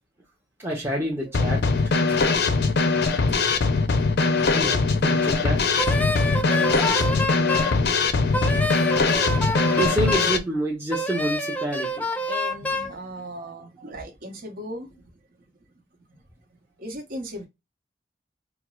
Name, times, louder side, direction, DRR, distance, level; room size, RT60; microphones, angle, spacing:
voice 1, 0.6-1.7 2.1-2.4 4.5-5.6 9.8-12.0 13.4-13.6, right 1 dB, 15° right, 0.8 m, -28 dB
Drum kit / Snare drum, 1.3-10.4, left 4 dB, 65° left, 0.6 m, -21 dB
Wind instrument woodwind instrument, 5.8-7.8 8.3-10.4 10.9-12.9, left 1 dB, 10° left, 0.4 m, -27 dB
voice 2, 6.3-7.9 12.3-15.0 16.1-16.2 16.8-17.5, right 1 dB, 55° right, 1.0 m, -38 dB
4.5 x 2.0 x 2.3 m
head